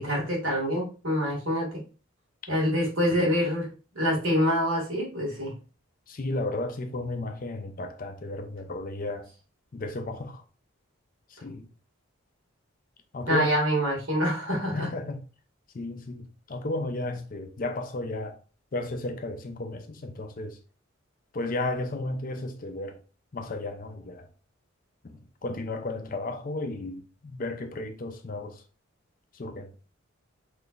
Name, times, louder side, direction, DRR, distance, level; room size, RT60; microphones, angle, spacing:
voice 1, 0.0-1.8 2.5-3.7 4.0-5.5 13.3-14.9, equal, 75° right, 1.9 m, -26 dB
voice 2, 6.1-9.3 9.7-10.4 11.3-11.7 13.1-13.5 14.7-15.2 15.7-18.4 18.7-20.6 21.3-23.0 23.3-24.3 25.0-28.6 29.3-29.7, left 2 dB, 40° left, 0.4 m, -33 dB
3.8 x 3.1 x 2.4 m
head